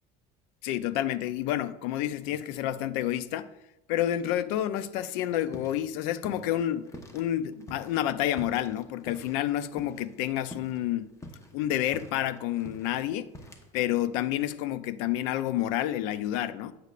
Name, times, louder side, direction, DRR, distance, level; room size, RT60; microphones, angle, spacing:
voice 1, 0.6-3.5 3.9-11.1 11.5-13.3 13.7-16.7, left 12 dB, 85° left, 0.5 m, -29 dB
sound 1, 5.1-5.9 6.2-7.2 7.6-10.2 10.5-10.8 11.1-13.8, left 1 dB, 15° left, 1.0 m, -45 dB
9.3 x 8.2 x 2.4 m
supercardioid pair, 120°, 17 cm